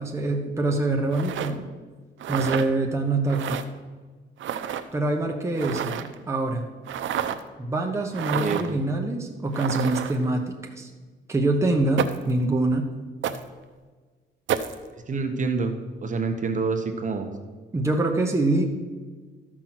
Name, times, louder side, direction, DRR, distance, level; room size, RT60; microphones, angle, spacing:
voice 1, 0.0-1.7 2.3-3.6 4.9-6.7 7.6-10.9 11.3-12.9 17.7-18.6, right 2 dB, 15° right, 2 dB, 0.9 m, -25 dB
sound 1, 1.1-1.5 2.2-2.7 3.3-3.6 4.4-4.8 5.5-6.2 6.9-7.4 8.1-8.7 9.5-10.3 12.0-12.3 13.2-13.4 14.5-14.7, right 9 dB, 70° right, 0.7 m, -29 dB
voice 2, 8.3-8.6 14.9-15.7 16.0-17.3, right 4 dB, 40° right, 5 dB, 1.1 m, -27 dB
13.0 x 6.2 x 5.9 m, 1.4 s
cardioid pair, 135°, 20 cm